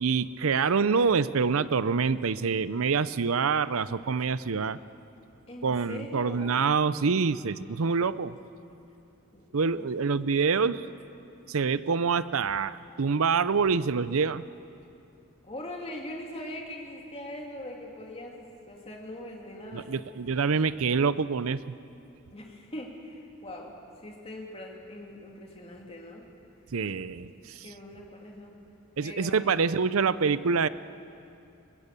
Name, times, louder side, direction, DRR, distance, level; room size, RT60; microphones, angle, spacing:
voice 1, 0.0-4.8 5.6-8.3 9.5-10.9 11.5-14.4 19.7-21.6 26.7-27.6 29.0-30.7, right 5 dB, 90° right, 16 dB, 0.6 m, -26 dB
voice 2, 5.5-6.6 9.3-9.5 9.7-9.9 15.4-20.0 22.3-26.3 27.6-28.6 29.0-29.6, left 1 dB, 30° left, 0 dB, 2.8 m, -42 dB
23.5 x 21.5 x 6.8 m, 2.6 s
head